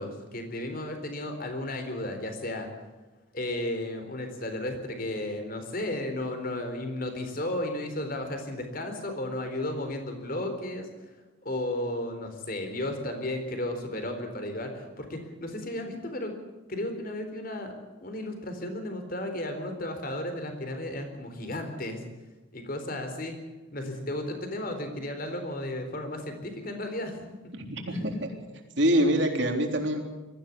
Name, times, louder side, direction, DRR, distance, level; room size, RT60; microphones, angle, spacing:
voice 1, 0.0-2.7 3.3-10.9 11.4-16.4 16.7-17.7 18.0-22.0 22.5-23.4 23.7-27.2 27.9-28.3, left 1 dB, 45° left, 6 dB, 4.0 m, -34 dB
voice 2, 27.5-28.3 28.8-30.0, right 1 dB, 60° right, 3 dB, 3.7 m, -25 dB
22.5 x 15.0 x 8.6 m, 1.2 s
head